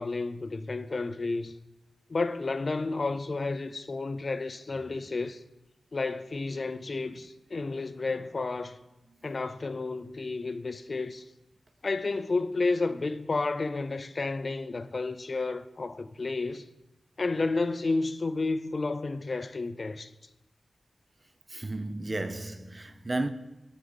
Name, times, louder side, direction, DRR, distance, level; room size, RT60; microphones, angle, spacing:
voice 1, 0.0-1.5 2.1-5.4 5.9-8.8 9.2-11.3 11.8-16.7 17.2-20.1, left 3 dB, 45° left, 0.4 m, -31 dB
voice 2, 21.5-23.3, right 2 dB, 30° right, 0.4 m, -33 dB
7.2 x 4.8 x 5.4 m
wide cardioid pair, 90°, 0 cm